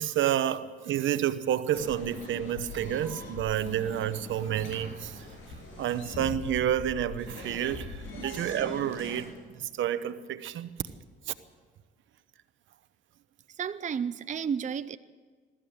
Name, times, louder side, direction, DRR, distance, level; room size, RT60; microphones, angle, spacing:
voice 1, 0.0-5.3 5.8-9.3 9.6-10.8 11.3-11.4, right 10 dB, 75° right, 1.1 m, -30 dB
sound 1, 1.7-9.2, left 3 dB, 80° left, 7.3 m, -42 dB
voice 2, 13.5-15.0, right 7 dB, 40° right, 0.6 m, -33 dB
22.0 x 14.0 x 8.8 m
cardioid pair, 90°, 20 cm